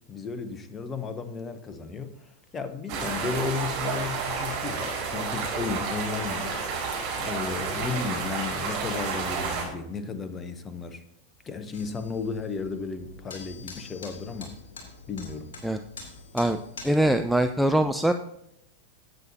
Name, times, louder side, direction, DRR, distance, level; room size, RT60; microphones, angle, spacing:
voice 1, 0.1-6.6 7.2-11.0 11.4-14.5 15.1-15.5, left 5 dB, 20° left, 11 dB, 0.9 m, -34 dB
sound 1, 2.9-9.6, right 5 dB, 45° right, 4.8 m, -30 dB
sound 2, 11.7-17.4, left 4 dB, 60° left, 2.9 m, -45 dB
voice 2, 16.8-18.1, right 1 dB, ahead, 7 dB, 0.4 m, -22 dB
17.0 x 8.4 x 2.8 m, 0.78 s
figure-of-eight pair, 90°, 0 cm